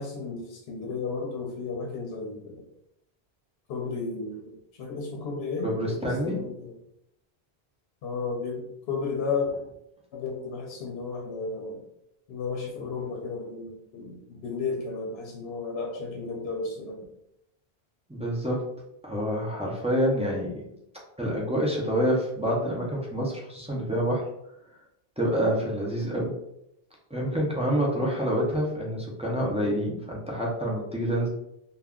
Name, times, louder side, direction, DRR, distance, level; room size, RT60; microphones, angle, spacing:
voice 1, 0.0-2.6 3.7-6.7 8.0-9.5 10.1-11.8 12.3-17.0, left 4 dB, 90° left, 0 dB, 0.8 m, -33 dB
voice 2, 5.6-6.4 18.1-18.6 19.0-20.6 21.2-24.2 25.2-26.3 27.1-31.3, equal, 10° right, -4 dB, 0.3 m, -27 dB
2.3 x 2.2 x 3.5 m, 0.80 s
omnidirectional pair, 1.0 m